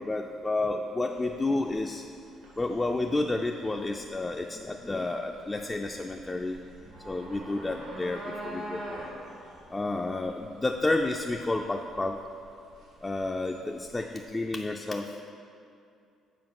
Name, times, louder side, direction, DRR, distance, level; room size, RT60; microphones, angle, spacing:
voice 1, 0.0-2.1 2.6-6.6 6.9-9.0 9.7-12.2 13.0-15.2, left 2 dB, 15° left, 2 dB, 0.3 m, -30 dB
sound 1, 1.1-14.2, right 1 dB, 85° right, 2.0 m, -45 dB
7.5 x 4.6 x 5.9 m, 2.5 s
cardioid pair, 130°, 0 cm